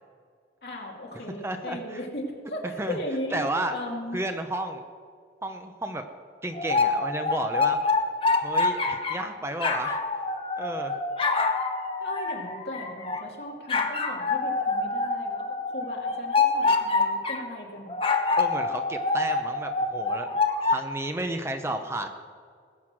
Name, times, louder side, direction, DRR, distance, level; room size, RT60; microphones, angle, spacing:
voice 1, 0.6-4.2 12.0-15.5 15.7-18.0, left 1 dB, 60° left, -1 dB, 2.7 m, -37 dB
voice 2, 1.4-2.0 2.8-3.0 3.3-3.7 4.1-4.8 5.4-6.0 6.4-7.8 8.4-10.0 10.6-10.9 18.4-20.3 20.6-22.1, right 1 dB, 15° right, 6 dB, 0.7 m, -32 dB
sound 1, 6.5-9.3 9.6-13.3 13.7-17.4 17.9-20.8, left 3 dB, 30° left, 1.1 m, -26 dB
20.5 x 8.2 x 6.1 m, 2.1 s
head